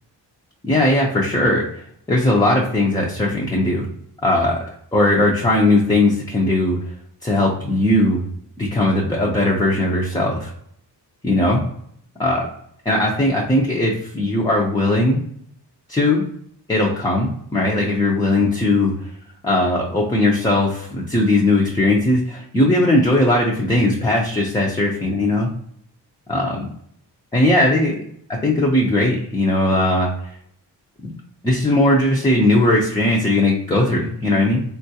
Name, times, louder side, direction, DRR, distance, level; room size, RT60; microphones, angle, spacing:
voice 1, 0.7-1.7 2.1-3.9 4.2-4.6 4.9-6.8 7.2-8.2 8.6-10.5 11.2-11.6 12.2-12.5 12.9-15.2 15.9-16.2 16.7-18.9 19.4-25.5 26.3-26.7 27.3-27.9 28.4-30.1 31.0-31.1 31.4-34.6, left 1 dB, 10° left, -3 dB, 0.4 m, -18 dB
3.7 x 2.3 x 2.7 m, 0.68 s
wide cardioid pair, 125°, 42 cm